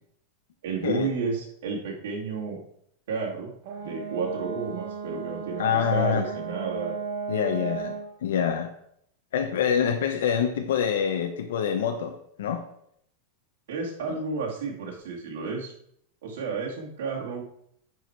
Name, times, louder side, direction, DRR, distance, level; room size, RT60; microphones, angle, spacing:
voice 1, 0.6-2.6 3.1-3.5 3.8-7.0 13.7-15.7 16.2-17.4, right 4 dB, 75° right, -3 dB, 2.3 m, -32 dB
Brass instrument, 3.6-8.1, right 5 dB, 50° right, 1.4 m, -34 dB
voice 2, 5.6-6.2 7.3-7.9 8.2-8.7 9.3-12.6 14.1-14.2, left 7 dB, 85° left, 4 dB, 0.9 m, -26 dB
10.5 x 4.9 x 4.6 m, 0.70 s
supercardioid pair, 175°, 0 cm